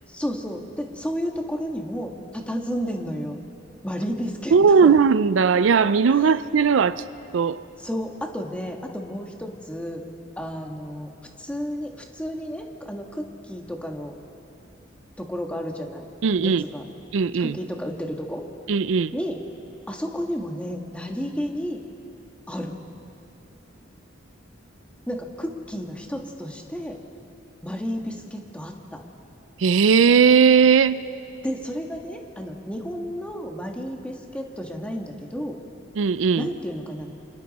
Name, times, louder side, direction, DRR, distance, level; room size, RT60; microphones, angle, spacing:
voice 1, 0.1-3.4 3.8-4.5 4.8-4.9 7.8-10.0 10.4-11.1 11.4-14.2 15.2-16.1 16.4-16.8 17.4-18.4 19.1-19.4 19.9-21.8 22.5-22.8 25.1-27.0 27.6-29.0 31.4-35.6 36.4-37.1, equal, 5° left, 2 dB, 1.6 m, -32 dB
voice 2, 4.5-7.0 7.3-7.6 16.2-16.6 17.1-17.6 18.7-19.1 29.6-31.0 36.0-36.5, right 6 dB, 80° right, 15 dB, 0.4 m, -18 dB
29.0 x 25.5 x 4.2 m, 2.7 s
head